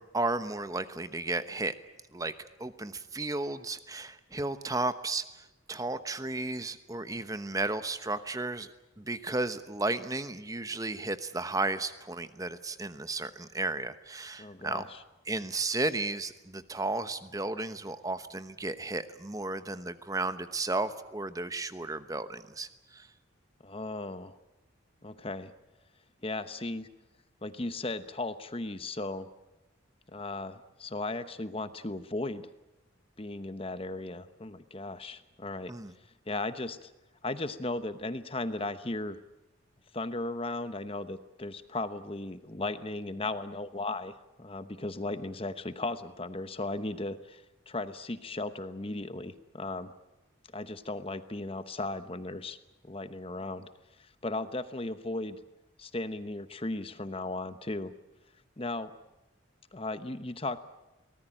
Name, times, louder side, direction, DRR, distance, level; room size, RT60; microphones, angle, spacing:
voice 1, 0.0-1.7 2.1-2.3 2.6-8.7 9.0-14.9 15.3-23.1 35.7-35.9, right 2 dB, 15° right, 12 dB, 1.0 m, -34 dB
voice 2, 14.4-15.0 23.6-24.3 25.0-25.5 26.2-26.9 27.4-29.3 30.1-32.5 33.2-35.7 36.3-36.9 37.2-39.2 39.9-44.1 44.4-49.9 50.5-52.6 52.8-53.7 54.0-55.4 55.8-57.9 58.6-58.9 59.7-60.6, left 2 dB, 25° left, 12 dB, 1.0 m, -36 dB
24.0 x 19.0 x 9.0 m, 0.98 s
head